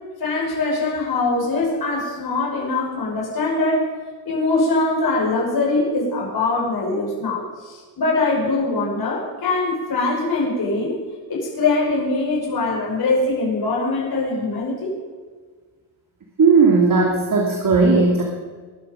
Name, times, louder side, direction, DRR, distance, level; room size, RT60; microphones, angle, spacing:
voice 1, 0.2-3.9 4.3-11.0 11.3-15.0, left 3 dB, 50° left, -3 dB, 5.8 m, -22 dB
voice 2, 16.4-18.2, right 4 dB, 45° right, 0 dB, 2.9 m, -16 dB
22.0 x 11.5 x 5.3 m, 1.5 s
cardioid pair, 95°, 45 cm